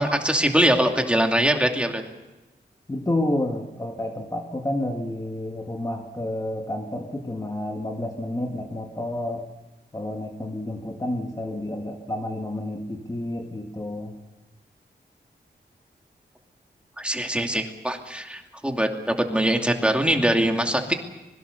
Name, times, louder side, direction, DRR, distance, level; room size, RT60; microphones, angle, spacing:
voice 1, 0.0-2.0 17.0-20.9, right 1 dB, 5° right, 3 dB, 2.6 m, -22 dB
voice 2, 2.9-9.5 9.9-14.1, left 1 dB, 20° left, 2 dB, 1.8 m, -30 dB
25.5 x 22.0 x 6.7 m, 1.1 s
wide cardioid pair, 125°, 18 cm